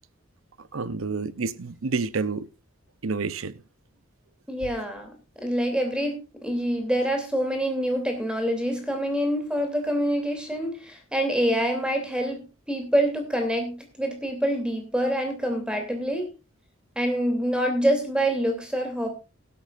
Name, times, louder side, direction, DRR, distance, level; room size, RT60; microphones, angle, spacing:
voice 1, 0.7-2.5 3.0-3.5, right 4 dB, 75° right, 0.7 m, -29 dB
voice 2, 4.5-6.2 6.4-16.3 17.0-19.1, equal, 5° right, 2.9 m, -26 dB
17.0 x 12.5 x 2.5 m
head